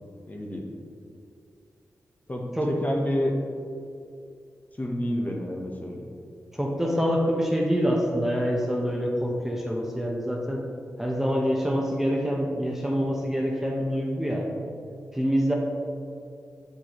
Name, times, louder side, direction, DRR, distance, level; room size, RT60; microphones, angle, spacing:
voice 1, 0.3-0.7 2.3-3.3 4.7-6.1, left 1 dB, 25° left, 0 dB, 1.0 m, -29 dB
voice 2, 6.5-10.7 11.0-14.5 15.1-15.5, equal, 5° right, -1 dB, 0.9 m, -26 dB
8.1 x 4.5 x 3.0 m, 2.4 s
cardioid pair, 45°, 6 cm